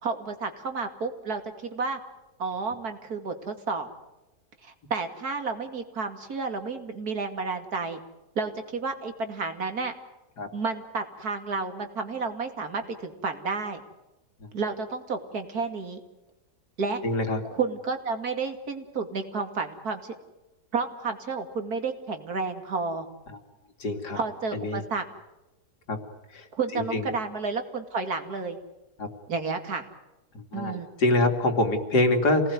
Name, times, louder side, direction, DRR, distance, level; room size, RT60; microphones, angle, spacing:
voice 1, 0.0-2.0 2.4-3.9 4.6-8.0 8.4-9.9 10.5-13.8 14.5-16.0 16.8-17.0 17.5-20.1 20.7-23.1 24.1-25.0 26.6-28.6 29.3-29.8 30.5-30.9, right 4 dB, 70° right, 6 dB, 2.9 m, -31 dB
voice 2, 17.0-17.4 23.3-23.4 23.8-24.2 24.5-24.8 25.9-26.0 26.3-26.5 26.7-27.1 29.0-29.1 30.3-32.5, left 2 dB, 90° left, 5 dB, 3.2 m, -25 dB
27.5 x 19.0 x 9.5 m, 1.0 s
omnidirectional pair, 1.7 m